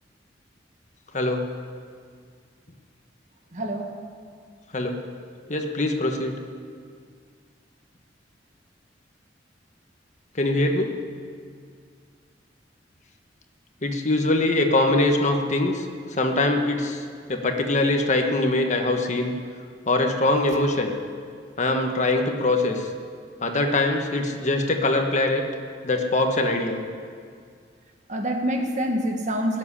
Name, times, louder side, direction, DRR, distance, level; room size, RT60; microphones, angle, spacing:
voice 1, 3.5-3.9 28.1-29.6, equal, 40° right, 3 dB, 1.6 m, -26 dB
voice 2, 5.5-6.3 10.3-10.9 13.8-15.9 16.2-17.0 17.3-19.3 19.9-20.9 21.6-22.9 23.4-25.4 25.8-26.8, left 2 dB, 40° left, 4 dB, 1.4 m, -22 dB
19.5 x 7.6 x 9.9 m, 2.1 s
head